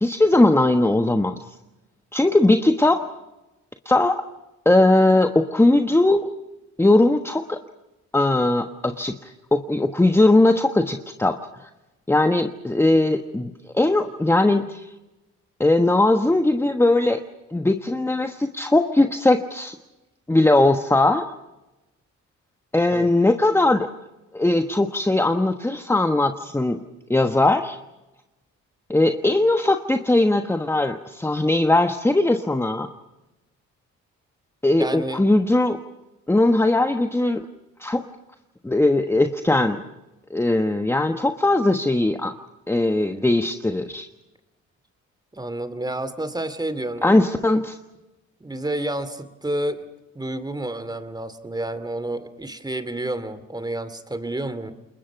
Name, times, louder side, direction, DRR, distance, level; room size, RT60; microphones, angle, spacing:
voice 1, 0.0-1.3 2.1-3.0 3.8-4.2 4.6-6.3 6.8-7.6 8.1-11.4 12.1-14.9 15.6-17.2 17.5-19.8 20.3-21.3 22.7-23.9 24.3-26.8 27.1-27.8 28.9-32.9 34.6-35.8 36.3-37.4 37.8-38.0 38.6-39.8 40.3-42.3 42.7-44.1 47.0-47.8, left 2 dB, 10° left, 7 dB, 1.2 m, -19 dB
voice 2, 34.8-35.2 45.3-47.2 48.4-49.8 50.1-54.7, right 1 dB, 15° right, 12 dB, 2.5 m, -29 dB
28.5 x 21.5 x 5.9 m, 1.0 s
cardioid pair, 90°, 30 cm